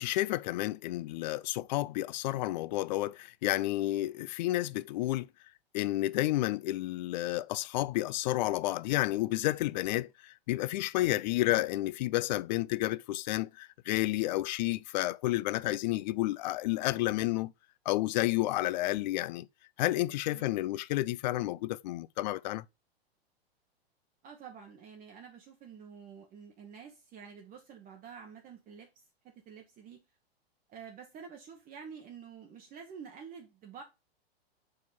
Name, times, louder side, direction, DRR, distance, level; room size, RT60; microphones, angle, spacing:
voice 1, 0.0-5.3 5.7-17.5 17.9-19.5 19.8-22.6, left 17 dB, 45° left, 0.4 m, -31 dB
voice 2, 24.2-30.0 30.7-33.8, right 6 dB, 25° right, 1.1 m, -49 dB
4.8 x 4.5 x 5.4 m
hypercardioid pair, 110°, 31 cm